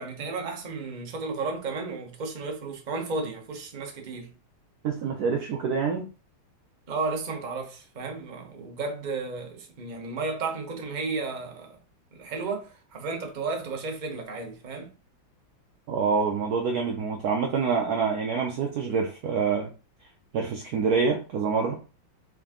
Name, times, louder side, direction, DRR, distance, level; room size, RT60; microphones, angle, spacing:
voice 1, 0.0-4.3 6.9-11.7 12.1-14.9, right 3 dB, 35° right, 0.7 m, -33 dB
voice 2, 4.8-6.1 15.9-19.7 20.3-21.8, right 5 dB, 80° right, 0.8 m, -26 dB
3.9 x 3.5 x 3.6 m
omnidirectional pair, 2.3 m